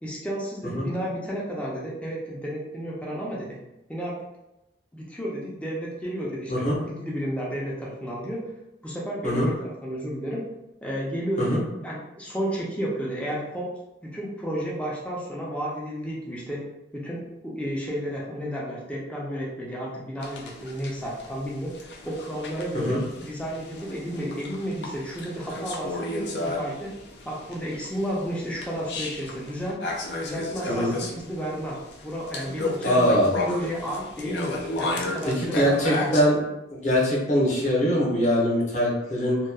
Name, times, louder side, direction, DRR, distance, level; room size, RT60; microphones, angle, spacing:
voice 1, 0.0-3.6 3.9-4.2 4.9-8.4 8.8-10.5 10.8-13.7 14.0-16.6 16.9-21.7 22.1-26.9 27.3-29.8 30.2-33.0 33.4-36.1, equal, 5° left, -5 dB, 0.4 m, -32 dB
sound 1, 20.2-36.2, left 2 dB, 70° left, 0.4 m, -34 dB
voice 2, 32.8-33.3 35.3-36.4 36.7-39.4, equal, 40° left, -6 dB, 0.9 m, -22 dB
2.9 x 2.2 x 2.2 m, 0.91 s
head